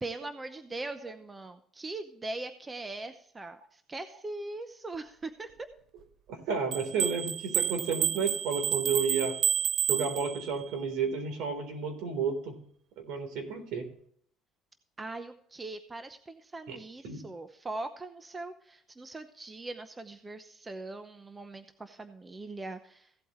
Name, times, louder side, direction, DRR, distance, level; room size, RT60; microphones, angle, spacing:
voice 1, 0.0-5.7 15.0-23.1, right 2 dB, 15° right, 9 dB, 0.8 m, -41 dB
voice 2, 6.3-9.3 9.9-12.5 13.1-13.8 16.7-16.8 17.0-17.2, right 5 dB, 70° right, 6 dB, 3.8 m, -31 dB
sound 1, 6.7-10.7, right 9 dB, 50° right, 0.4 m, -30 dB
16.0 x 8.4 x 3.2 m, 0.63 s
cardioid pair, 135°, 0 cm